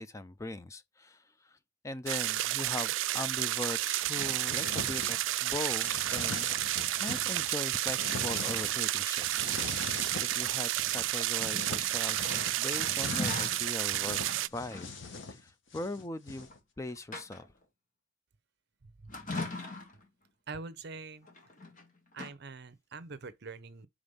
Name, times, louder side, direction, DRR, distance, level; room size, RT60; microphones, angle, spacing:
voice 1, 0.0-1.6 1.8-6.5 7.0-9.9 10.2-12.2 12.6-14.2 14.5-14.9 15.3-16.5 16.8-17.5, left 2 dB, 15° left, 0.4 m, -40 dB
sound 1, 2.1-14.5, right 15 dB, 80° right, 0.3 m, -31 dB
sound 2, 4.1-5.4 5.7-7.5 7.9-8.9 9.2-11.1 11.4-16.6, left 3 dB, 75° left, 1.2 m, -42 dB
sound 3, 11.4-13.6 14.2-14.9 16.4-16.5 16.9-17.6 19.1-20.0 21.3-21.8 22.1-22.3, left 2 dB, 45° left, 1.7 m, -40 dB
voice 2, 18.8-19.1 20.5-21.3 22.1-23.9, right 4 dB, 60° right, 0.7 m, -44 dB
5.2 x 3.5 x 5.4 m
head